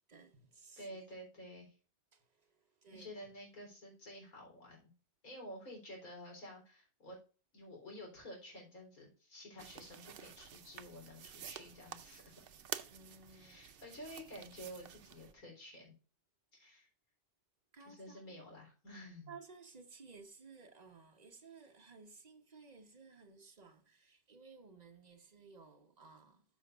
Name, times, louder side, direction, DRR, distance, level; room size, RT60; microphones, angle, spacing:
voice 1, 0.1-0.8 2.1-2.5 2.8-3.2 12.9-13.6 17.7-18.5 19.3-26.4, right 4 dB, 30° right, 1.0 m, -57 dB
voice 2, 0.8-1.7 2.9-4.9 5.2-7.2 7.5-12.5 13.3-15.9 16.5-16.9 17.8-19.3, equal, 55° left, 4.2 m, -51 dB
sound 1, 9.6-15.3, right 9 dB, 85° right, 0.5 m, -49 dB
13.0 x 6.5 x 2.5 m
omnidirectional pair, 1.8 m